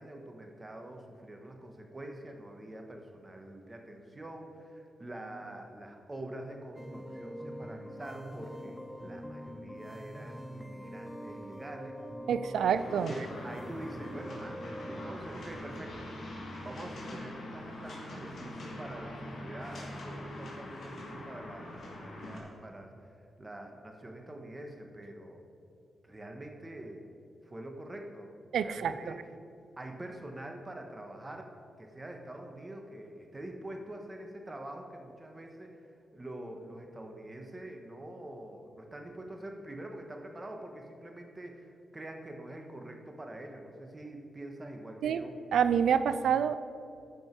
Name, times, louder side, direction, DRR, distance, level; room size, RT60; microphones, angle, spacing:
voice 1, 0.0-12.0 12.5-16.1 16.6-25.4 26.0-27.1 27.4-28.3 28.6-29.2 29.8-31.5 31.8-35.7 36.1-45.4, right 1 dB, 25° right, 3 dB, 1.4 m, -45 dB
sound 1, 6.8-15.2, equal, 5° right, 0.8 m, -44 dB
voice 2, 12.3-13.1 28.5-29.0 45.0-45.2 45.5-46.6, right 8 dB, 85° right, 13 dB, 0.4 m, -27 dB
sound 2, 12.7-22.4, left 1 dB, 60° left, 2.4 m, -43 dB
13.0 x 5.3 x 4.6 m, 2.5 s
cardioid pair, 65°, 0 cm